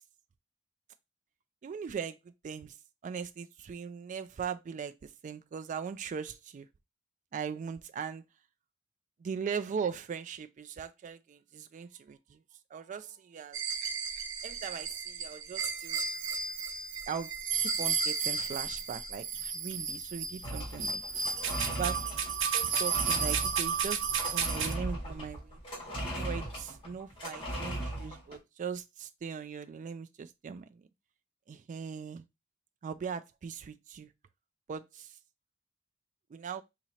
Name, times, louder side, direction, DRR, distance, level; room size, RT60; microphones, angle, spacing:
voice 1, 1.6-2.2 2.4-2.7 3.0-6.7 7.3-8.2 9.2-12.4 12.7-13.6 14.4-16.0 17.1-17.3 17.6-21.0 21.8-24.0 24.3-25.6 26.2-30.8 31.5-32.2 32.8-34.1 34.7-35.1 36.3-36.6, right 6 dB, 35° right, 0.3 m, -39 dB
sound 1, 13.5-24.7, right 6 dB, 60° right, 0.7 m, -33 dB
sound 2, 20.4-28.4, right 1 dB, 25° left, 1.7 m, -38 dB
2.9 x 2.8 x 4.2 m
head